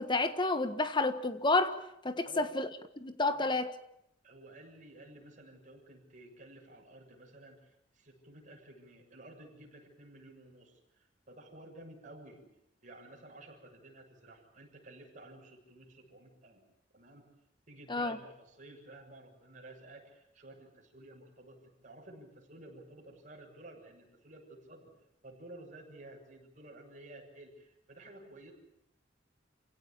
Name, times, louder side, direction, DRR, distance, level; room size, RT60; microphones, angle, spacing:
voice 1, 0.0-1.8 2.0-2.7 3.0-3.7 17.9-18.2, left 2 dB, 25° left, 1.5 m, -30 dB
voice 2, 4.2-12.4 12.8-16.6 16.9-17.3 17.7-24.9 25.2-28.5, right 2 dB, 45° right, 7.0 m, -53 dB
28.0 x 17.0 x 8.7 m
head